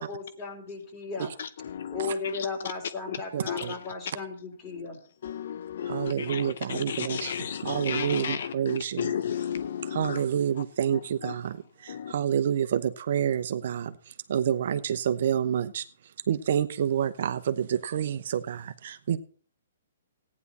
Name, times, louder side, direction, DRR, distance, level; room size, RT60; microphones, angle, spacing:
voice 1, 0.0-1.3 1.9-5.0, left 4 dB, 25° left, 3.3 m, -35 dB
voice 2, 1.7-2.1 3.5-3.8 5.2-10.2 11.2-11.3 11.9-12.1, left 8 dB, 65° left, 0.6 m, -33 dB
voice 3, 3.3-3.7 5.9-9.1 9.9-11.6 11.8-14.0 14.3-15.8 16.3-19.2, right 9 dB, 60° right, 0.9 m, -28 dB
15.0 x 9.7 x 4.2 m
hypercardioid pair, 135°, 0 cm